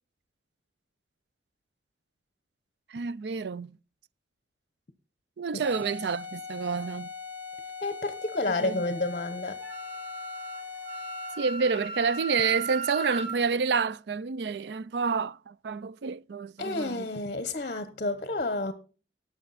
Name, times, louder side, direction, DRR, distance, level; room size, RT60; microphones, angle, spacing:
voice 1, 2.9-3.8 5.4-7.1 8.6-8.8 11.4-17.1, right 5 dB, 70° right, 0.4 m, -29 dB
sound 1, 5.6-11.5, left 5 dB, 10° right, 4.0 m, -40 dB
voice 2, 7.8-9.6 16.6-18.7, left 2 dB, 45° left, 0.9 m, -30 dB
Wind instrument woodwind instrument, 9.6-13.3, right 4 dB, 5° left, 3.1 m, -37 dB
18.0 x 6.3 x 4.1 m
head